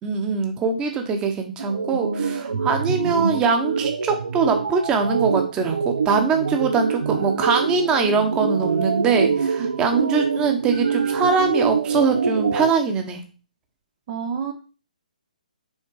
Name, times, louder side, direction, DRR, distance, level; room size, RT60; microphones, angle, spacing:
voice 1, 0.0-13.2, right 5 dB, 15° right, 5 dB, 1.1 m, -22 dB
sound 1, 1.6-12.7, right 5 dB, 75° right, 0.8 m, -24 dB
voice 2, 14.1-14.5, right 6 dB, 35° right, 4 dB, 0.8 m, -28 dB
6.5 x 4.4 x 4.8 m, 0.35 s
figure-of-eight pair, 140°, 5 cm